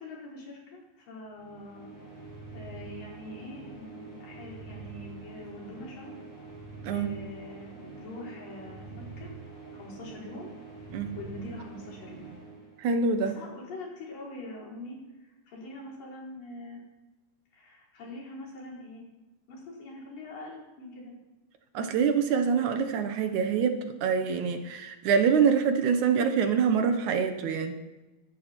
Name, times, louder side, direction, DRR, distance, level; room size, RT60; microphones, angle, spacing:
voice 1, 0.0-1.9 2.5-6.1 6.9-9.3 9.7-10.5 11.2-12.3 13.2-16.8 17.5-19.0 19.5-21.1, left 2 dB, 80° left, -5 dB, 6.5 m, -44 dB
sound 1, 1.3-13.2, right 4 dB, 35° left, 8.1 m, -45 dB
voice 2, 12.8-13.3 21.7-27.8, right 6 dB, 70° right, 7 dB, 2.3 m, -25 dB
25.0 x 11.5 x 4.5 m, 1.1 s
omnidirectional pair, 3.9 m